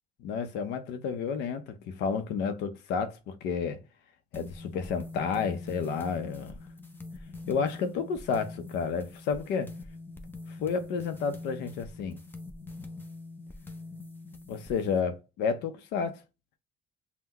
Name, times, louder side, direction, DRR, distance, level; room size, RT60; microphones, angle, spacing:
voice 1, 0.2-3.8 4.3-6.6 7.5-9.7 10.5-12.2 14.5-16.2, left 6 dB, 85° left, 0.7 m, -31 dB
sound 1, 4.3-15.0, left 2 dB, 10° left, 0.6 m, -44 dB
5.6 x 2.2 x 2.9 m
cardioid pair, 110°, 17 cm